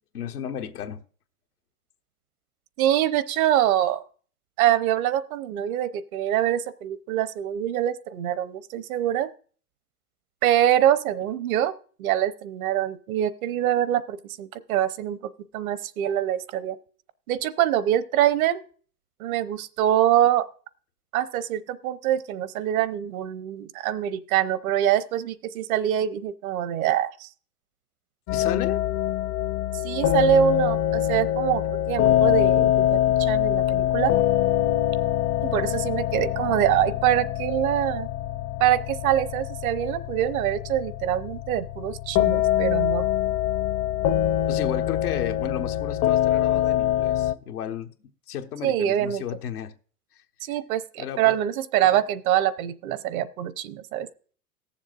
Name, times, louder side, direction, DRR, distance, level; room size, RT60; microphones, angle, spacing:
voice 1, 0.1-1.0 28.3-28.8 44.5-49.8 50.1-50.2 51.0-51.4 51.8-52.0, left 9 dB, 80° left, 1.2 m, -33 dB
voice 2, 2.8-4.0 4.6-9.3 10.4-11.7 12.0-16.8 17.3-18.6 19.2-20.5 21.1-27.3 29.8-34.1 35.4-38.1 38.6-43.1 48.6-49.2 50.4-54.1, right 12 dB, 65° right, 0.9 m, -24 dB
sound 1, 28.3-47.3, left 12 dB, 40° left, 0.7 m, -24 dB
18.5 x 7.2 x 2.5 m
hypercardioid pair, 95°, 45 cm